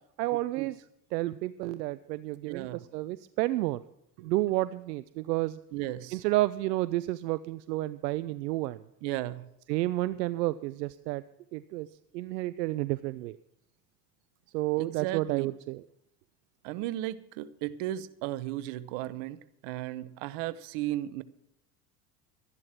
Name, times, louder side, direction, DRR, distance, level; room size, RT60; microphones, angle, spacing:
voice 1, 0.2-0.8 1.1-2.7 2.9-3.8 4.2-5.6 6.1-8.8 9.7-11.2 11.5-11.9 12.1-13.4 14.5-15.8, right 17 dB, 85° right, 16 dB, 0.5 m, -30 dB
voice 2, 2.5-2.8 4.2-4.3 5.7-6.2 9.0-9.4 14.8-15.5 16.6-21.2, right 14 dB, 65° right, 15 dB, 1.0 m, -35 dB
12.5 x 11.0 x 6.0 m, 0.83 s
hypercardioid pair, 75°, 48 cm